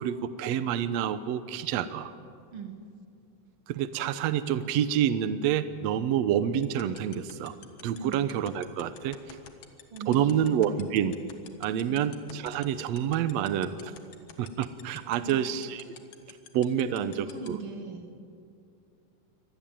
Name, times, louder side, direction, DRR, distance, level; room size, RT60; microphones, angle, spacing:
voice 1, 0.0-2.1 3.7-7.5 7.8-9.2 10.1-11.2 11.6-13.9 14.4-15.8 16.5-17.6, right 9 dB, 70° right, 12 dB, 1.7 m, -28 dB
sound 1, 6.6-17.5, left 10 dB, 75° left, 3.1 m, -46 dB
voice 2, 9.9-10.6 11.8-12.0 15.0-15.4 17.0-18.2, right 5 dB, 45° right, 4 dB, 2.8 m, -40 dB
24.5 x 19.0 x 9.2 m, 2.4 s
omnidirectional pair, 4.0 m